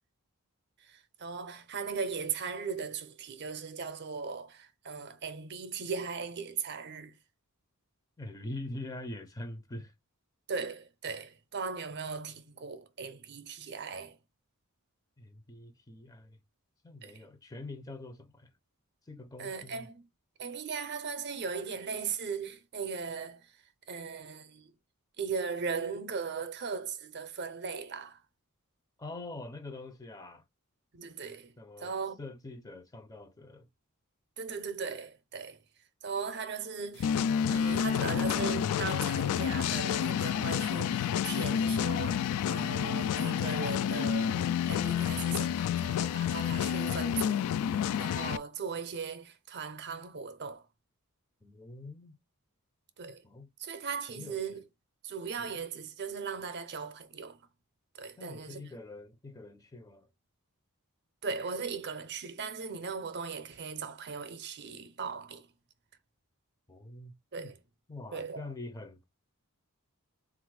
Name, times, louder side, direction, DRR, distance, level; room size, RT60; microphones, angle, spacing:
voice 1, 0.8-7.1 10.5-14.2 17.0-17.3 19.4-20.1 20.4-23.5 23.9-24.7 25.2-28.2 30.9-32.2 34.4-35.6 36.0-37.2 37.5-50.6 53.0-53.2 53.6-54.6 55.0-57.4 57.9-58.6 61.2-65.5 67.3-67.5 68.1-68.5, right 5 dB, 50° right, 0.6 m, -38 dB
voice 2, 8.2-9.9 15.2-16.4 16.8-18.5 19.1-19.9 29.0-30.4 31.6-31.9 32.2-33.7 51.4-52.2 53.0-53.5 54.1-54.6 55.4-55.5 58.2-60.1 66.7-67.5 67.9-69.0, left 2 dB, 15° left, 0.5 m, -44 dB
sound 1, 37.0-48.4, left 8 dB, 80° left, 0.3 m, -29 dB
3.9 x 2.5 x 4.6 m
head